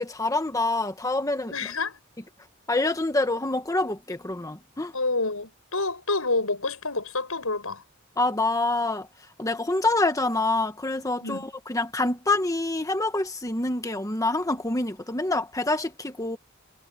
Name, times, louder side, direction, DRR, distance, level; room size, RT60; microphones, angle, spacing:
voice 1, 0.0-1.7 2.7-4.9 8.2-9.1 9.4-16.4, left 2 dB, 15° left, 1.4 m, -26 dB
voice 2, 1.5-2.0 4.9-7.8 11.2-11.4, left 3 dB, 90° left, 7.2 m, -28 dB
head